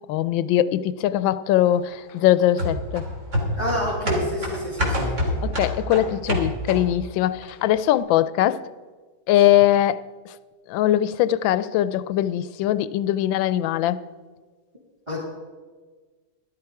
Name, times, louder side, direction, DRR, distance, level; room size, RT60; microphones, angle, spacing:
voice 1, 0.1-3.0 5.4-8.6 9.3-10.1 10.7-14.0, left 12 dB, 85° left, 1.3 m, -21 dB
sound 1, 2.6-7.1 7.4-7.5, left 1 dB, 40° right, 2.6 m, -26 dB
voice 2, 3.5-5.1 15.1-15.2, equal, 15° right, 2.5 m, -28 dB
12.5 x 12.0 x 4.7 m
omnidirectional pair, 2.0 m